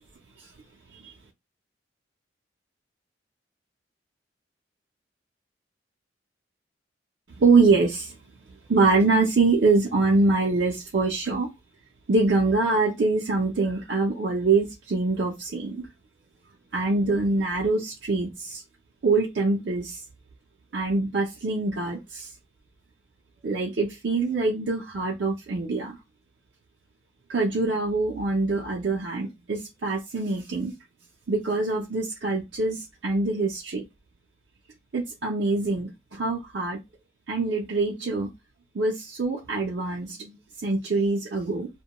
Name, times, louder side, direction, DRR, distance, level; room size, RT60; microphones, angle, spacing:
voice 1, 7.4-8.1 8.7-11.5 12.1-15.8 16.7-18.6 19.0-20.0 20.7-22.3 23.4-26.0 27.3-30.7 31.3-33.8 34.9-36.8 37.3-38.3 38.7-41.7, right 3 dB, 60° right, -2 dB, 0.5 m, -24 dB
2.2 x 2.2 x 2.9 m, 0.21 s
head